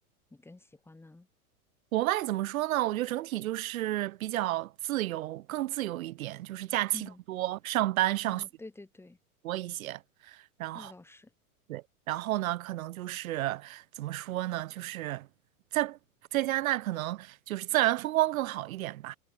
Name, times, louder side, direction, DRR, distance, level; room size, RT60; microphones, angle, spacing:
voice 1, 0.3-1.3 6.9-7.2 8.3-9.2 10.7-11.3, left 2 dB, 5° left, 2.8 m, -48 dB
voice 2, 1.9-8.4 9.4-10.9 11.7-15.3 15.7-16.0 16.3-19.2, right 15 dB, 65° right, 3.1 m, -31 dB
supercardioid pair, 145°, 45 cm